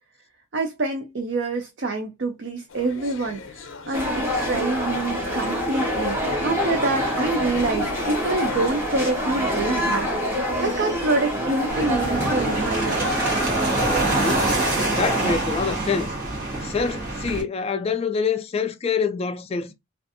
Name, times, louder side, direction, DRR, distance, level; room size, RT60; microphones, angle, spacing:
voice 1, 0.5-13.1, right 3 dB, 60° right, 0.5 m, -26 dB
sound 1, 2.7-8.7, left 4 dB, 85° left, 0.5 m, -38 dB
sound 2, 3.9-15.3, equal, 10° right, 0.9 m, -26 dB
sound 3, 11.7-17.4, right 2 dB, 45° right, 1.3 m, -25 dB
voice 2, 14.0-16.1 16.6-19.7, left 5 dB, 30° left, 0.3 m, -26 dB
2.5 x 2.4 x 2.6 m
head